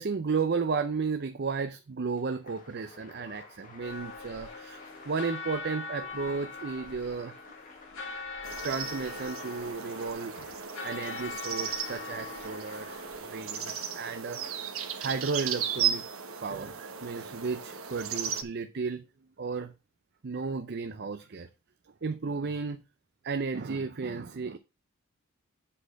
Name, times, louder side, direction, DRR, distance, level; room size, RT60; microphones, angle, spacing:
voice 1, 0.0-7.3 8.6-13.0 13.3-14.7 15.0-16.0 16.3-19.0 19.4-19.7 20.2-21.5 22.0-22.8 23.2-24.6, right 4 dB, 50° right, 0.5 m, -34 dB
Applause, 2.1-14.0, left 3 dB, 40° left, 1.7 m, -53 dB
sound 1, 3.8-13.3, left 4 dB, 70° left, 3.7 m, -42 dB
sound 2, 8.4-18.4, right 8 dB, 70° right, 1.2 m, -36 dB
7.6 x 4.3 x 6.3 m
head